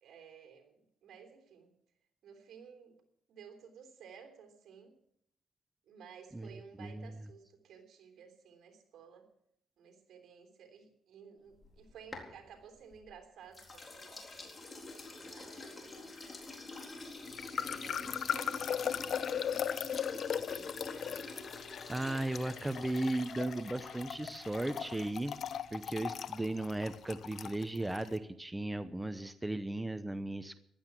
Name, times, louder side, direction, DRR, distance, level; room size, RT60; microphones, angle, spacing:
voice 1, 0.0-1.7 2.2-3.0 3.3-4.9 5.9-9.3 9.8-14.5 15.2-16.2 17.5-19.6 20.4-21.2, right 7 dB, 70° right, 4 dB, 3.4 m, -55 dB
voice 2, 6.8-7.1 21.9-25.3 25.7-30.6, right 2 dB, 10° right, 11 dB, 0.8 m, -36 dB
sound 1, 11.5-13.1 13.5-25.3, left 3 dB, 30° left, 4.0 m, -48 dB
sound 2, 17.3-28.1, left 8 dB, 60° left, 0.9 m, -38 dB
15.5 x 12.0 x 6.0 m, 0.72 s
cardioid pair, 90°, 0 cm